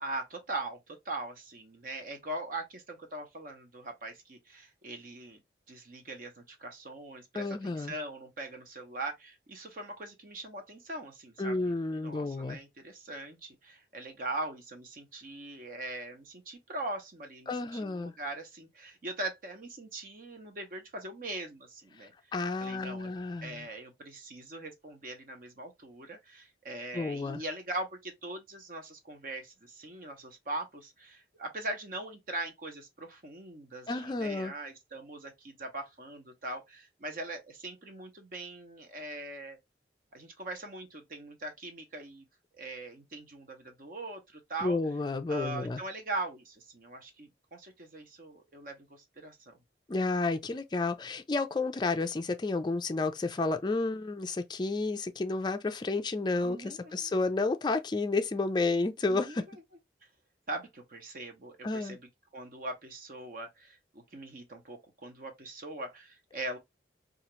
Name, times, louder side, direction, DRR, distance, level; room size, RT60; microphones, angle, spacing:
voice 1, 0.0-5.4 5.7-22.1 22.6-39.6 40.1-42.2 42.5-44.8 45.3-49.6 56.3-57.1 59.1-59.4 60.5-62.0 62.3-66.6, right 2 dB, 50° right, 0.8 m, -41 dB
voice 2, 7.3-7.9 11.4-12.6 17.5-18.1 22.0-23.7 26.9-27.4 33.9-34.5 44.6-45.8 49.9-59.5 61.6-62.0, left 3 dB, 25° left, 0.3 m, -31 dB
2.8 x 2.4 x 3.0 m
head